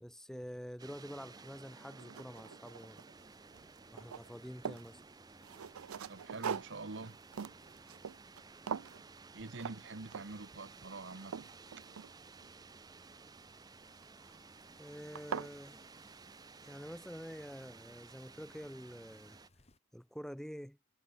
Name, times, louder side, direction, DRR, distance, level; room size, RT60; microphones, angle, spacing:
voice 1, 0.0-3.1 3.9-5.0 14.8-15.8 16.6-19.4 19.9-20.8, equal, ahead, 1.2 m, -47 dB
sound 1, 0.8-19.5, right 4 dB, 20° right, 0.4 m, -56 dB
sound 2, 1.2-1.3 1.8-3.2 3.5-4.9 5.4-8.4 8.7-9.0 9.6-9.8 10.1-10.5 10.9-12.5 14.0-14.4 14.8-14.9 15.1-15.5, right 7 dB, 90° right, 0.5 m, -43 dB
sound 3, 3.1-19.8, left 2 dB, 30° left, 2.1 m, -68 dB
voice 2, 6.1-7.2 9.3-11.5, right 3 dB, 55° right, 1.0 m, -45 dB
head